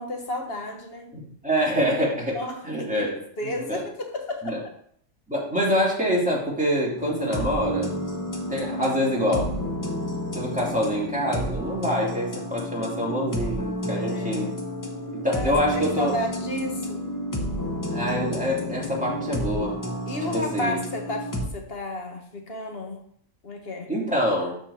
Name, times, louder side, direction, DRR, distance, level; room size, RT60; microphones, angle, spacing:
voice 1, 0.0-1.1 2.3-2.7 2.9-4.6 11.8-12.1 13.9-14.6 15.2-17.0 20.0-23.0 23.4-23.9, left 1 dB, 55° left, 3 dB, 1.6 m, -33 dB
voice 2, 1.1-2.4 2.6-3.2 3.4-3.8 4.4-4.6 5.3-8.0 8.5-9.5 10.3-14.5 15.2-16.1 17.9-19.8 20.3-20.8 23.9-24.5, equal, 5° right, -5 dB, 2.7 m, -25 dB
sound 1, 7.0-21.5, equal, 15° left, 1.0 m, -31 dB
13.0 x 4.6 x 4.3 m, 0.65 s
omnidirectional pair, 1.3 m